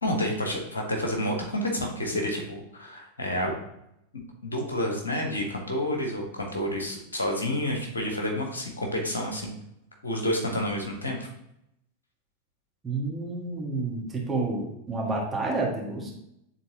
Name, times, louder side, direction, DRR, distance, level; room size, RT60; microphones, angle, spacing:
voice 1, 0.0-3.5 4.4-9.6 10.0-11.2, left 1 dB, 75° left, 1 dB, 1.3 m, -29 dB
voice 2, 12.8-16.1, right 3 dB, 15° right, -3 dB, 1.8 m, -29 dB
9.1 x 3.9 x 2.9 m, 0.79 s
figure-of-eight pair, 90°, 0 cm